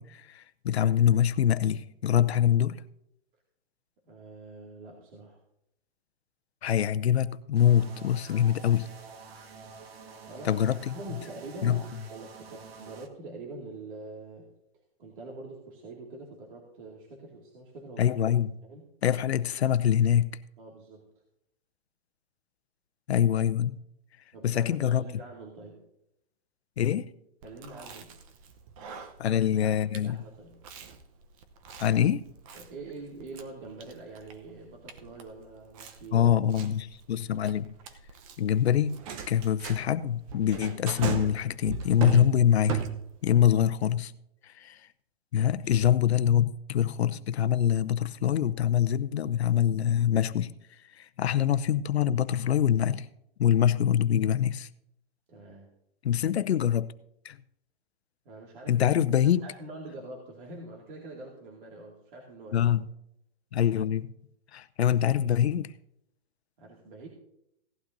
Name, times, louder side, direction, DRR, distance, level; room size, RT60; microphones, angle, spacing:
voice 1, 0.0-2.8 6.6-8.9 10.4-10.9 11.6-11.8 18.0-18.6 19.0-20.4 23.1-23.8 24.4-25.0 26.8-27.0 29.2-30.2 31.8-32.3 36.1-37.8 38.4-38.9 39.3-42.8 43.2-44.1 44.4-44.8 45.3-50.5 51.0-53.1 53.4-54.7 56.0-56.9 57.2-57.4 58.7-59.5 62.5-62.8 63.5-64.1 64.5-65.7, left 10 dB, 85° left, 0.7 m, -24 dB
voice 2, 4.0-5.4 10.1-10.6 10.9-14.5 15.0-18.2 18.6-18.8 20.6-21.1 24.3-25.8 27.4-28.2 29.3-30.6 32.5-36.3 43.3-43.4 55.3-55.7 58.2-58.9 59.2-62.7 66.6-67.1, right 2 dB, 55° right, 2.3 m, -45 dB
sound 1, 7.6-13.1, right 4 dB, 70° right, 1.6 m, -48 dB
Chewing mastication, 27.4-43.4, right 7 dB, 35° right, 0.9 m, -39 dB
17.0 x 12.0 x 2.7 m
hypercardioid pair, 155°, 31 cm